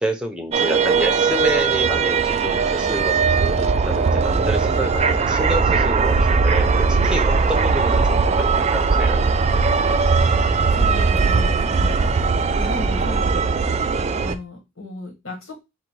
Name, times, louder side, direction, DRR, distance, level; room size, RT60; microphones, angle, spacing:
voice 1, 0.0-6.7 7.0-9.2, right 1 dB, 5° right, 3 dB, 0.7 m, -28 dB
sound 1, 0.5-14.4, right 4 dB, 30° right, 0.3 m, -19 dB
voice 2, 10.3-11.9 12.2-13.8 14.1-15.6, left 2 dB, 85° left, 2 dB, 1.7 m, -35 dB
4.0 x 2.2 x 4.6 m, 0.23 s
head